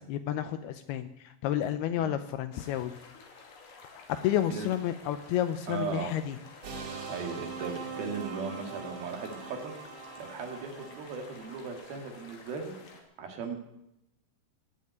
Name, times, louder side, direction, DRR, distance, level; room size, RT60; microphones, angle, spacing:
voice 1, 0.1-2.9 3.9-6.4, left 11 dB, 80° left, 11 dB, 2.4 m, -31 dB
sound 1, 2.5-13.0, left 4 dB, 55° left, 3.5 m, -52 dB
voice 2, 5.7-6.1 7.1-9.7 10.2-12.7 13.2-13.6, right 5 dB, 65° right, 4 dB, 3.5 m, -37 dB
sound 2, 6.6-12.0, right 4 dB, 45° right, 2.8 m, -42 dB
17.5 x 7.7 x 9.5 m, 0.85 s
omnidirectional pair, 5.0 m